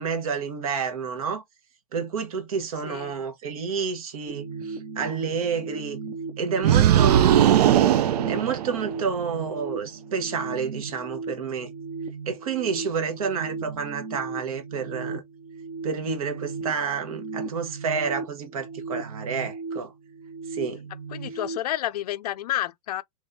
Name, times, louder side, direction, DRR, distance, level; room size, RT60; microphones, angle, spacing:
voice 1, 0.0-1.4 1.9-6.0 6.4-7.6 8.3-11.7 12.3-15.2 15.8-19.9 20.5-20.8, right 6 dB, 65° right, 1.2 m, -29 dB
voice 2, 2.8-3.2 21.1-23.0, left 13 dB, 85° left, 0.4 m, -30 dB
sound 1, 4.3-21.6, right 4 dB, 20° right, 0.4 m, -36 dB
sound 2, 6.6-9.1, right 11 dB, 85° right, 0.4 m, -19 dB
3.4 x 3.2 x 2.6 m
supercardioid pair, 180°, 20 cm